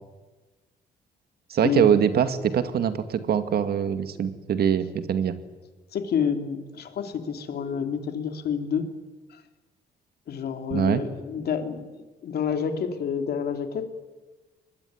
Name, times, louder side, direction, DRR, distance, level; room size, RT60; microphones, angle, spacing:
voice 1, 1.5-5.3 10.7-11.0, right 8 dB, 65° right, 10 dB, 2.3 m, -23 dB
voice 2, 5.9-8.9 9.3-9.4 10.3-13.8, left 7 dB, 65° left, 6 dB, 3.2 m, -29 dB
25.5 x 21.0 x 9.6 m, 1.2 s
cardioid pair, 110°, 18 cm